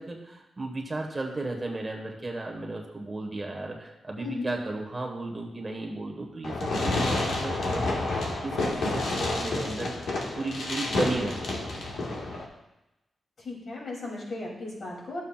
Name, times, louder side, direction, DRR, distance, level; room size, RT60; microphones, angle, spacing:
voice 1, 0.0-8.0 8.4-10.1 10.3-11.7, right 2 dB, 20° right, 1 dB, 1.4 m, -34 dB
voice 2, 4.2-4.6 13.4-15.2, left 2 dB, 50° left, -3 dB, 2.9 m, -36 dB
Fireworks, 6.4-12.4, left 2 dB, 80° left, 1.6 m, -29 dB
13.5 x 7.2 x 2.4 m, 0.95 s
wide cardioid pair, 140°, 0 cm